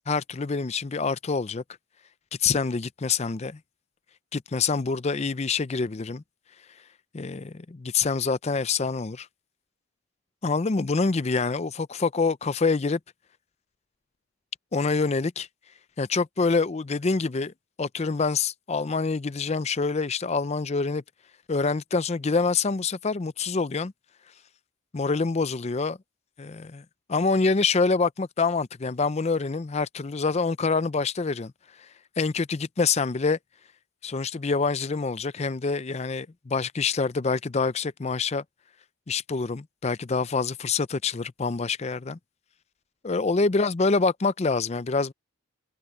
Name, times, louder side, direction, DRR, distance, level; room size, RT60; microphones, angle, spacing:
voice 1, 0.1-1.6 2.4-3.6 4.3-6.2 7.1-9.3 10.4-13.0 14.7-15.5 16.0-21.0 21.5-23.9 24.9-26.0 26.4-31.5 31.8-31.9 32.2-33.4 34.0-38.4 39.1-42.2 43.0-45.1, left 4 dB, 30° left, 0.4 m, -26 dB
head